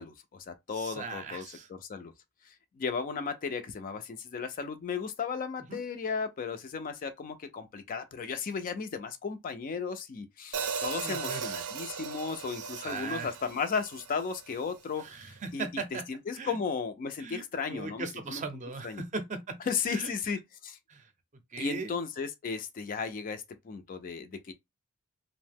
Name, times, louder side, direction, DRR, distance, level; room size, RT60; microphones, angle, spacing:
voice 1, 0.0-1.4 1.7-2.1 2.8-15.0 15.5-15.6 16.1-18.4 18.8-19.0 19.7-20.8 21.6-24.5, left 5 dB, 40° left, 0.4 m, -35 dB
voice 2, 0.7-1.7 5.7-5.8 11.0-11.7 12.5-13.3 15.0-16.0 16.3-16.6 17.2-17.4 17.7-19.6 19.9-20.1 20.9-21.1 21.5-22.0, right 4 dB, 35° right, 0.5 m, -39 dB
Hi-hat, 10.5-14.7, right 6 dB, 80° right, 0.5 m, -37 dB
2.6 x 2.0 x 3.4 m
head